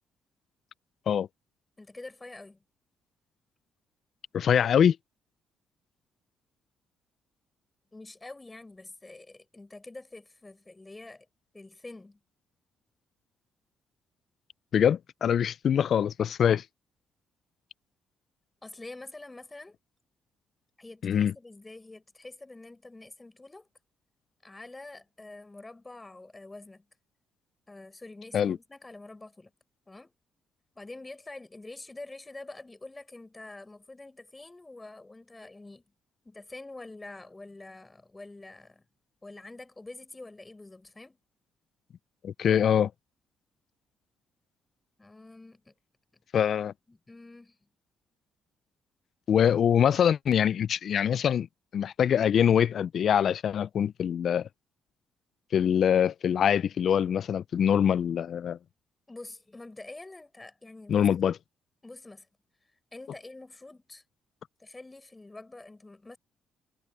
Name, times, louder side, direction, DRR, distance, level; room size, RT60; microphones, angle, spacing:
voice 1, 1.8-2.6 7.9-11.3 11.5-12.2 18.6-19.8 20.8-23.7 24.4-26.8 27.7-29.5 29.9-30.1 30.7-35.8 36.2-38.8 39.2-41.2 45.0-45.7 46.1-46.4 46.9-47.6 59.1-61.1 61.8-62.3 62.9-64.0 64.6-66.2, left 2 dB, 20° left, 6.2 m, -46 dB
voice 2, 4.3-5.0 14.7-16.6 21.0-21.3 28.3-28.6 42.2-42.9 46.3-46.7 49.3-51.5 51.7-54.5 55.5-58.6 60.9-61.3, left 8 dB, 60° left, 0.4 m, -24 dB
cardioid pair, 80°, 0 cm